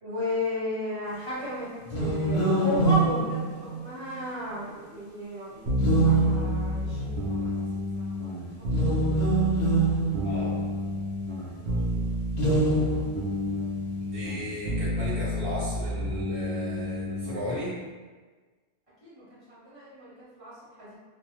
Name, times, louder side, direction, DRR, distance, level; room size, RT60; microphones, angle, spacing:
voice 1, 0.0-3.5 3.8-8.1 8.7-9.5 11.5-12.1 19.0-21.0, left 1 dB, 35° right, -12 dB, 1.3 m, -35 dB
sound 1, 1.9-4.2 5.7-6.9 8.6-10.9 12.3-13.4, right 3 dB, 50° left, 0.6 m, -25 dB
sound 2, 5.7-17.5, left 1 dB, 85° right, 0.8 m, -30 dB
voice 2, 10.2-10.6 14.0-17.7, equal, 65° right, -10 dB, 1.4 m, -35 dB
2.6 x 2.1 x 3.0 m, 1.4 s
omnidirectional pair, 1.0 m